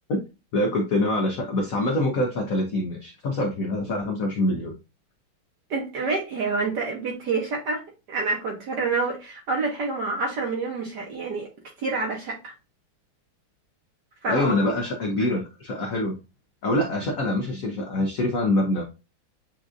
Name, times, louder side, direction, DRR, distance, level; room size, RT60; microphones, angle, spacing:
voice 1, 0.5-4.7 14.2-16.1 16.6-18.8, left 1 dB, 75° left, 2 dB, 0.7 m, -25 dB
voice 2, 5.7-7.8 8.1-11.5 11.8-12.5 14.2-14.5, right 3 dB, 60° right, 0 dB, 1.2 m, -27 dB
7.2 x 2.5 x 2.5 m, 0.29 s
omnidirectional pair, 2.4 m